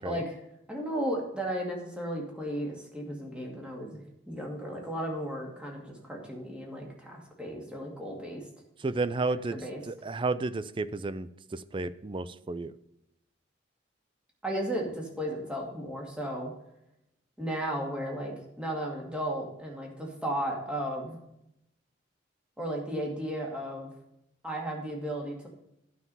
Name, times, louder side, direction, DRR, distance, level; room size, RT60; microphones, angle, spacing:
voice 1, 0.0-0.4 0.7-8.4 9.5-9.8 14.4-16.5 17.4-21.2 22.6-23.9 24.4-25.5, right 1 dB, 5° right, -1 dB, 2.3 m, -34 dB
voice 2, 8.8-9.6 9.9-12.7, right 3 dB, 30° right, 15 dB, 0.4 m, -32 dB
11.5 x 5.9 x 5.5 m, 0.82 s
head